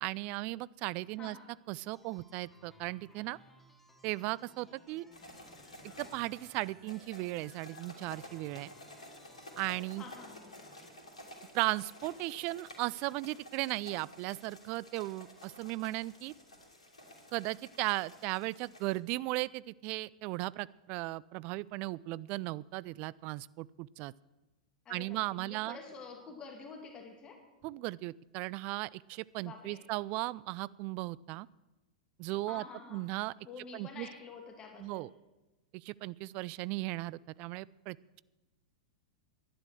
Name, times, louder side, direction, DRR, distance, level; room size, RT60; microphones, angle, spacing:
voice 1, 0.0-1.4 1.7-3.4 4.0-5.1 6.0-8.7 9.6-10.0 11.5-16.3 17.3-24.1 24.9-25.8 27.6-31.5 32.2-32.7 32.9-33.3 33.7-34.1 34.8-35.1 35.7-38.2, right 20 dB, 40° right, 22 dB, 0.3 m, -36 dB
voice 2, 1.2-1.5 10.0-10.5 24.9-27.4 29.4-29.9 32.5-35.1, left 4 dB, 25° left, 3 dB, 2.4 m, -49 dB
sound 1, 1.8-10.9, left 1 dB, 5° left, 1.8 m, -62 dB
sound 2, 5.1-19.0, left 1 dB, 85° left, 2.8 m, -52 dB
11.0 x 10.5 x 6.3 m, 1.1 s
figure-of-eight pair, 100°, 3 cm